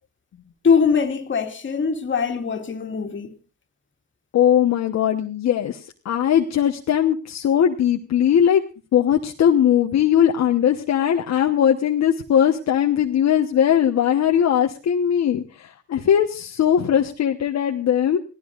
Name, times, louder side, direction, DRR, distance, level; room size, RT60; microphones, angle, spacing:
voice 1, 0.6-3.4, left 6 dB, 40° left, 2.2 m, -22 dB
voice 2, 4.3-8.6 8.9-18.2, left 9 dB, 60° left, 1.2 m, -19 dB
27.0 x 16.5 x 2.5 m
cardioid pair, 90°, 30 cm